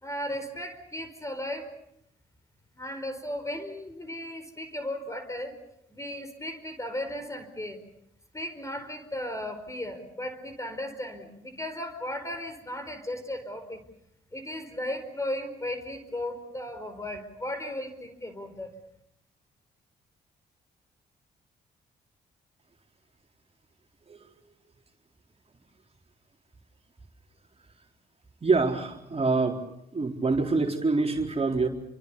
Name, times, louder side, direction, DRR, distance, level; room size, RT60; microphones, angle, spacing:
voice 1, 0.0-1.7 2.8-5.6 5.9-7.8 8.3-13.8 14.3-18.7, left 1 dB, 15° left, 10 dB, 4.9 m, -36 dB
voice 2, 28.4-29.6 29.9-31.7, right 3 dB, 35° right, 2 dB, 4.2 m, -25 dB
29.0 x 24.5 x 7.0 m, 0.78 s
supercardioid pair, 55°, 18 cm